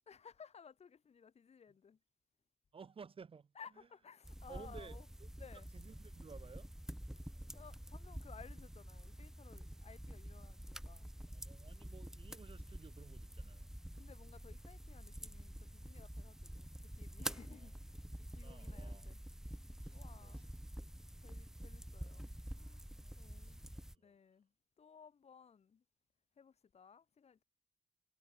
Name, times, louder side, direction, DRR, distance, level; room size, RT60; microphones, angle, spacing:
voice 1, 0.1-2.0 3.6-5.1 5.4-5.7 7.5-11.1 13.9-18.0 18.3-19.2 19.9-20.5 21.2-22.9 23.2-23.6 24.0-24.5 24.8-25.8 26.4-27.4, left 6 dB, 55° left, 6.0 m, -59 dB
voice 2, 2.7-3.9 4.5-5.3 5.7-6.7 11.3-13.7 17.2-17.7 18.2-19.1 19.8-20.8 23.0-24.2, right 5 dB, 45° right, 1.4 m, -57 dB
sound 1, 4.2-24.0, equal, 5° right, 1.6 m, -48 dB
cardioid pair, 90°, 13 cm